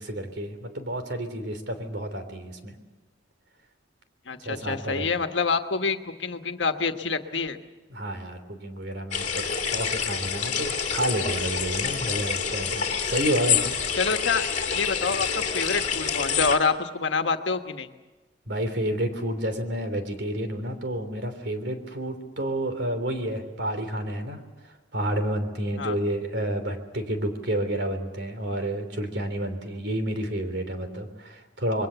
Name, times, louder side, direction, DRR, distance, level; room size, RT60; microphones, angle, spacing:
voice 1, 0.0-2.8 4.4-5.2 7.9-13.8 18.5-31.9, right 1 dB, 65° right, 8 dB, 3.3 m, -30 dB
voice 2, 4.3-7.6 14.0-14.4 14.7-17.9 25.8-25.9, left 4 dB, 85° left, 7 dB, 1.4 m, -27 dB
sound 1, 9.1-16.6, left 7 dB, 40° left, 2.9 m, -27 dB
26.5 x 22.0 x 7.0 m, 1.3 s
head